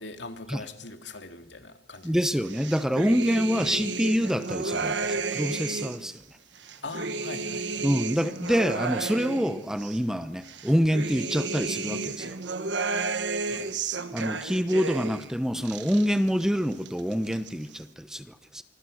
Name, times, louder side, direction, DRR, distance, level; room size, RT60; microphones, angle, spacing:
voice 1, 0.0-2.2 3.6-3.7 6.8-7.8 13.5-13.7, left 3 dB, 80° left, 2.5 m, -41 dB
voice 2, 2.0-6.2 7.8-12.4 14.1-18.6, equal, 5° right, 0.9 m, -26 dB
sound 1, 2.5-6.1 6.6-10.0 10.5-15.3 15.6-16.4 16.7-17.5, right 4 dB, 85° right, 1.3 m, -32 dB
24.5 x 24.5 x 6.5 m
head